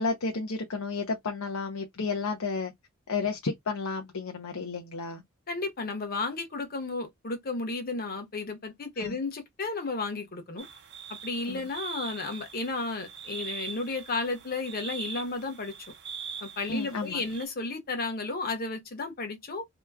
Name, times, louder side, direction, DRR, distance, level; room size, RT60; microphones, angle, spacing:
voice 1, 0.0-2.7 3.1-5.2 9.0-9.2 11.5-11.6 16.7-17.2, left 4 dB, 90° left, 0.7 m, -32 dB
voice 2, 5.5-10.6 11.1-15.7 16.4-19.7, left 3 dB, 45° left, 1.1 m, -33 dB
sound 1, 10.6-17.5, right 6 dB, 55° right, 0.8 m, -42 dB
2.9 x 2.2 x 3.5 m
head